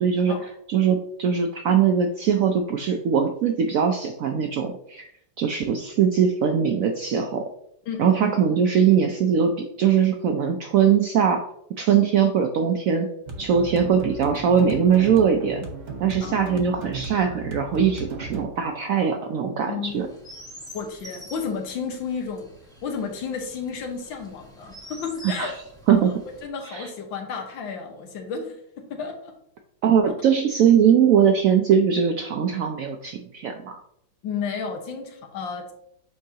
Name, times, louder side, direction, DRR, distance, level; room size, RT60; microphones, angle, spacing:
voice 1, 0.0-5.1 5.4-7.4 8.0-11.5 11.8-13.1 13.4-15.7 16.0-20.1 25.2-25.5 25.9-26.1 26.7-26.9 29.8-33.8, right 7 dB, 85° right, 4 dB, 0.7 m, -21 dB
voice 2, 7.9-8.3 16.2-16.3 19.7-19.9 20.7-22.5 22.8-25.6 26.4-29.3 30.0-30.1 34.2-35.7, left 6 dB, 85° left, 4 dB, 1.7 m, -32 dB
sound 1, 13.3-20.2, right 3 dB, 45° right, 1.3 m, -36 dB
Chirp tweet, 19.8-26.5, equal, 5° left, 0.7 m, -46 dB
7.8 x 4.5 x 2.8 m, 0.73 s
omnidirectional pair, 2.0 m